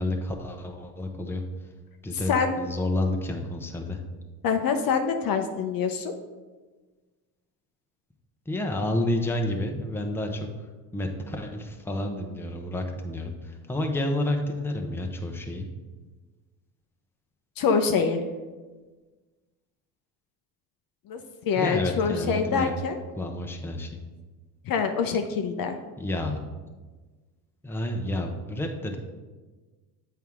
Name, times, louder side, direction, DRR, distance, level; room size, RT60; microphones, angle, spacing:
voice 1, 0.0-1.4 2.0-4.0 8.5-10.5 10.9-15.7 21.6-22.7 23.2-24.0 26.0-26.4 27.6-29.0, left 1 dB, 5° left, 3 dB, 0.8 m, -30 dB
voice 2, 2.1-2.6 4.4-6.1 17.6-18.2 21.1-23.0 24.7-25.8, left 5 dB, 45° left, 6 dB, 0.7 m, -25 dB
8.1 x 4.6 x 3.6 m, 1.3 s
supercardioid pair, 85°, 50 cm